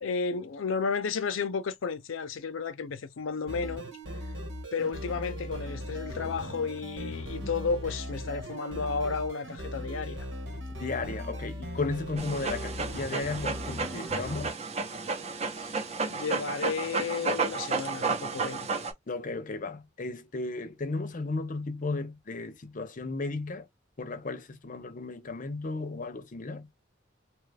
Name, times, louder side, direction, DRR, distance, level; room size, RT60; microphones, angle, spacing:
voice 1, 0.0-3.9 4.7-10.3 15.6-18.8, left 5 dB, 85° left, 0.5 m, -33 dB
sound 1, 3.5-14.5, equal, 70° right, 1.4 m, -39 dB
voice 2, 10.8-14.5 19.1-23.7 24.0-26.7, left 3 dB, 40° left, 0.6 m, -34 dB
Dog, 12.2-18.9, right 4 dB, 35° right, 0.7 m, -32 dB
2.9 x 2.4 x 3.3 m
head